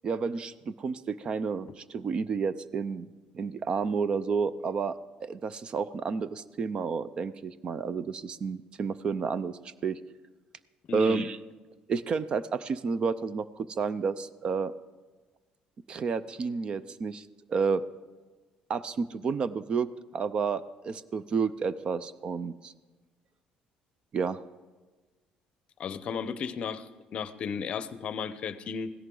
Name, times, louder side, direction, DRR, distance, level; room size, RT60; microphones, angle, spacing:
voice 1, 0.0-3.1 3.3-10.0 10.9-11.4 11.9-14.7 15.9-17.8 18.7-19.9 20.1-22.7 24.1-24.4, right 5 dB, 40° right, 16 dB, 0.5 m, -30 dB
voice 2, 10.9-11.3 25.8-28.9, left 6 dB, 45° left, 14 dB, 0.6 m, -34 dB
16.5 x 14.0 x 3.9 m, 1.3 s
cardioid pair, 130°, 3 cm